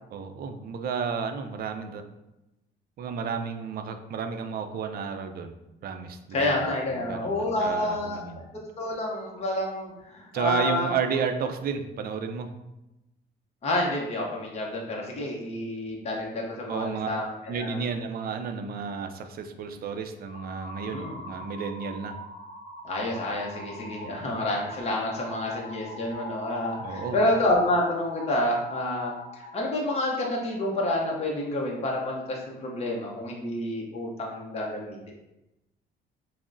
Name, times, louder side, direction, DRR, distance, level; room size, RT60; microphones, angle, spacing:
voice 1, 0.1-2.0 3.0-5.5 5.8-8.4 10.3-12.5 16.7-22.2 24.0-24.3 26.8-27.2, right 6 dB, 50° right, 7 dB, 0.4 m, -32 dB
voice 2, 6.3-8.2 8.8-10.9 13.6-17.8 20.9-21.2 22.8-35.0, left 1 dB, 30° left, -2 dB, 0.7 m, -29 dB
sound 1, 20.3-29.6, left 1 dB, 65° left, 1.0 m, -42 dB
5.8 x 2.0 x 2.5 m, 0.94 s
cardioid pair, 120°, 20 cm